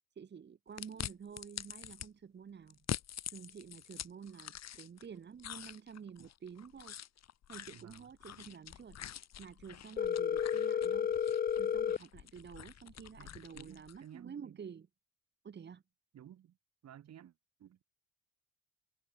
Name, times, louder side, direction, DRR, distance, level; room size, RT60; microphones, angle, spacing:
voice 1, 0.1-2.8 3.3-7.0 7.5-9.0 9.4-11.1 11.5-14.9 15.4-15.8, right 7 dB, 35° right, 1.5 m, -50 dB
sound 1, 0.8-2.1 2.7-5.1 5.4-14.0, left 10 dB, 55° left, 3.0 m, -46 dB
voice 2, 7.7-8.1 13.2-14.6 16.1-16.6 16.8-17.8, right 10 dB, 55° right, 3.3 m, -55 dB
Telephone, 10.0-12.0, left 8 dB, 30° left, 0.6 m, -32 dB
supercardioid pair, 90°, 32 cm